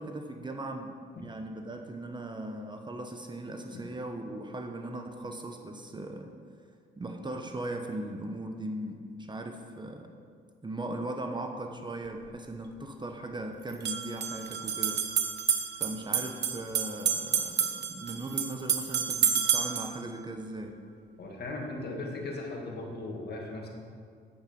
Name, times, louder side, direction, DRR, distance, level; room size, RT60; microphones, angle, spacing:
voice 1, 0.0-6.3 7.0-10.1 10.6-15.1 15.8-20.8, right 1 dB, 20° right, 4 dB, 0.9 m, -38 dB
sound 1, 12.1-12.2 13.7-19.9, right 8 dB, 60° right, 1.0 m, -29 dB
voice 2, 21.2-23.7, left 2 dB, 55° left, 0 dB, 2.1 m, -37 dB
8.8 x 8.1 x 5.3 m, 2.1 s
cardioid pair, 90°, 20 cm